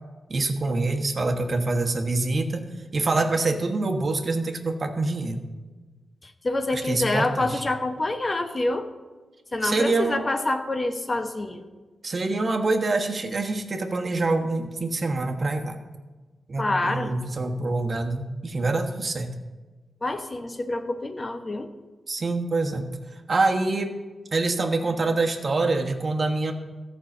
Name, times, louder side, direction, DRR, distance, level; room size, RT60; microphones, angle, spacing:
voice 1, 0.3-2.6 2.9-5.4 6.7-7.6 9.6-10.2 12.0-15.8 16.5-19.3 22.1-22.9 23.3-23.9 24.3-26.5, right 3 dB, 50° right, 4 dB, 1.3 m, -25 dB
voice 2, 6.2-8.9 9.5-11.7 16.6-17.1 20.0-21.7, left 2 dB, 35° left, 7 dB, 1.1 m, -27 dB
14.0 x 5.6 x 7.2 m, 1.3 s
cardioid pair, 55°, 0 cm